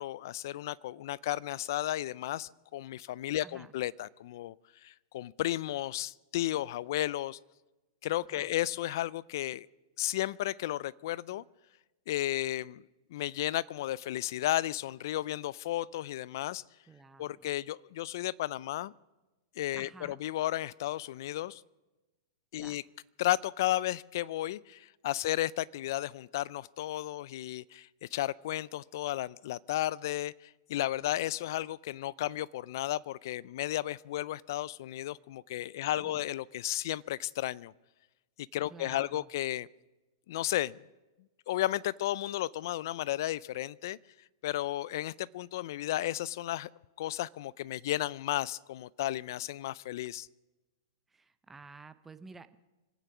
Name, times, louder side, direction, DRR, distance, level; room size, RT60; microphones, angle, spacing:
voice 1, 0.0-4.5 4.8-7.4 8.0-9.7 10.0-11.4 12.1-12.8 13.1-16.6 17.2-18.9 19.6-21.6 22.5-22.8 23.2-30.3 30.7-37.7 38.5-39.7 40.3-40.8 41.5-44.0 44.4-46.7 47.0-50.3, left 14 dB, 60° left, 23 dB, 0.4 m, -33 dB
voice 2, 3.4-3.7 8.3-8.5 16.9-17.5 19.7-20.2 22.6-22.8 36.0-36.3 38.7-39.3 51.1-52.6, right 4 dB, 10° right, 12 dB, 0.7 m, -51 dB
25.5 x 9.3 x 6.0 m, 1.1 s
hypercardioid pair, 140°, 2 cm